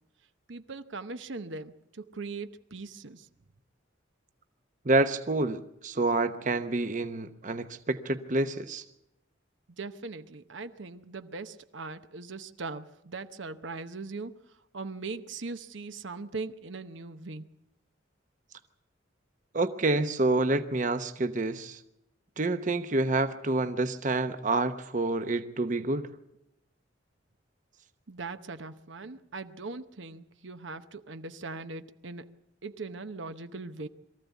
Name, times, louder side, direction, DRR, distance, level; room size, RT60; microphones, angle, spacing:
voice 1, 0.5-3.3 9.7-17.5 28.1-33.9, right 3 dB, 75° right, 10 dB, 0.9 m, -40 dB
voice 2, 4.8-8.8 19.5-21.8 22.4-26.1, right 2 dB, 40° right, 9 dB, 0.9 m, -28 dB
23.0 x 14.5 x 8.3 m, 0.82 s
head